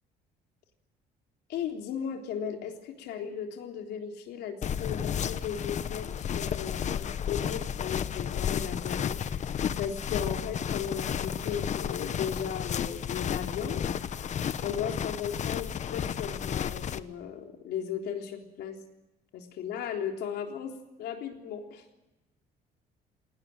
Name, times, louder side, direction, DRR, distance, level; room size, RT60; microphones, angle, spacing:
voice 1, 1.5-13.8 14.6-18.8 19.3-21.8, left 8 dB, 75° left, 3 dB, 3.7 m, -36 dB
sound 1, 4.6-17.0, left 8 dB, 45° left, 1.0 m, -32 dB
20.0 x 18.5 x 9.0 m, 1.0 s
cardioid pair, 110°, 17 cm